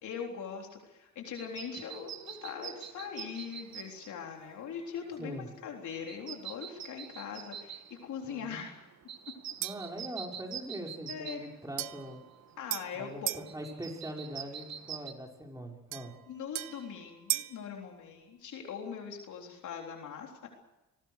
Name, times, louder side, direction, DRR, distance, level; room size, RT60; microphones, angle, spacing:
voice 1, 0.0-8.9 11.1-11.5 12.6-13.3 16.3-20.5, left 7 dB, 75° left, 1 dB, 3.8 m, -41 dB
sound 1, 1.3-15.1, right 9 dB, 60° right, 1.7 m, -46 dB
voice 2, 8.2-8.6 9.6-12.2 12.9-16.2, equal, 10° right, 1 dB, 5.7 m, -42 dB
sound 2, 9.6-10.0 11.8-13.5 15.9-17.6, right 16 dB, 85° right, 0.8 m, -37 dB
26.0 x 19.0 x 6.6 m, 1.0 s
cardioid pair, 90°, 30 cm